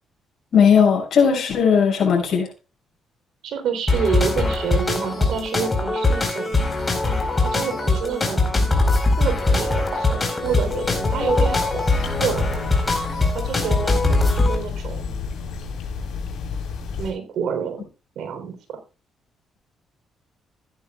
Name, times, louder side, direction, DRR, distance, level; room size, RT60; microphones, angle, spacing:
voice 1, 0.5-2.5, left 6 dB, 60° left, 6.4 m, -17 dB
voice 2, 3.4-6.6 7.4-8.6 9.2-12.7 13.3-15.1 17.0-17.9 18.2-18.8, right 7 dB, 75° right, 3.8 m, -28 dB
sound 1, 3.9-14.6, left 2 dB, 25° left, 4.5 m, -21 dB
sound 2, 10.4-17.1, left 5 dB, 85° left, 5.0 m, -31 dB
15.5 x 11.0 x 2.4 m
cardioid pair, 90°, 0 cm